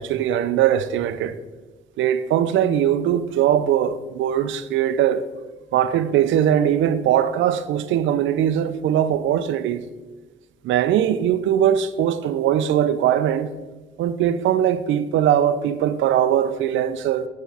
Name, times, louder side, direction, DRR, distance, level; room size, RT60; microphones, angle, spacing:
voice 1, 0.0-1.4 2.0-5.2 5.7-9.8 10.6-13.5 14.0-17.3, right 10 dB, 75° right, 0.4 m, -20 dB
7.2 x 4.6 x 3.4 m
cardioid pair, 90°, 20 cm